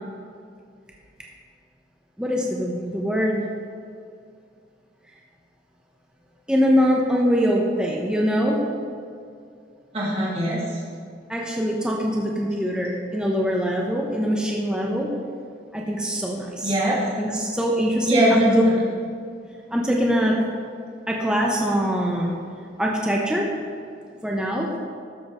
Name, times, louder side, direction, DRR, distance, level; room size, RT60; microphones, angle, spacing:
voice 1, 2.2-3.4 6.5-8.7 11.3-15.2 15.7-16.7 17.2-18.6 19.7-20.4 21.1-22.4 22.8-23.5 24.2-24.7, equal, 5° right, -2 dB, 0.9 m, -23 dB
voice 2, 9.9-10.6 16.6-17.0 18.1-18.7, equal, 35° right, -7 dB, 2.1 m, -21 dB
13.0 x 6.9 x 3.8 m, 2.3 s
head